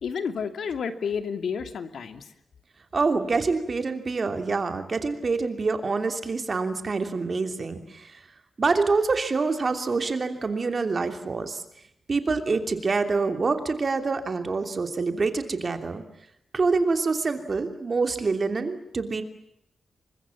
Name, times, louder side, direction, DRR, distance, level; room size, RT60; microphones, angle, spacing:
voice 1, 0.0-2.3, left 6 dB, 85° left, 9 dB, 2.6 m, -30 dB
voice 2, 2.9-8.2 8.6-11.6 12.1-16.0 16.5-19.2, right 4 dB, 35° right, 7 dB, 3.1 m, -26 dB
29.0 x 24.5 x 7.3 m, 0.78 s
wide cardioid pair, 175°, 0 cm